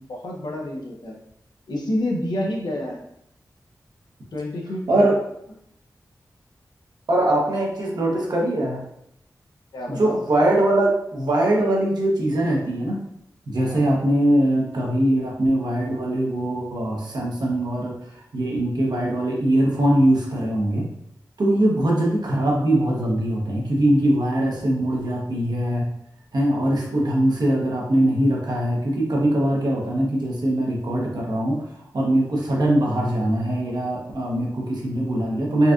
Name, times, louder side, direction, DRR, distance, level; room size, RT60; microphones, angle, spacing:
voice 1, 0.1-1.1 1.7-3.0 4.3-5.0 9.7-10.2 13.6-13.8, left 1 dB, 80° left, -1 dB, 0.7 m, -28 dB
voice 2, 7.1-8.8 9.9-13.0 13.5-17.9 18.3-20.8 21.4-25.9 26.3-31.6 31.9-35.7, right 1 dB, 70° right, -2 dB, 1.0 m, -21 dB
4.1 x 2.4 x 2.5 m, 0.74 s
cardioid pair, 40°, 7 cm